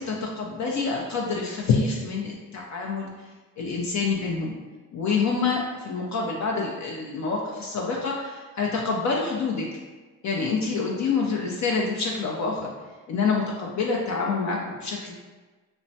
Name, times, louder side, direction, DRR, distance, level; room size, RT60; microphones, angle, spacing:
voice 1, 0.0-3.1 3.6-4.5 4.9-9.7 10.2-12.7 13.1-15.1, left 4 dB, 50° left, -2 dB, 0.5 m, -27 dB
3.0 x 2.1 x 2.6 m, 1.3 s
supercardioid pair, 60°, 37 cm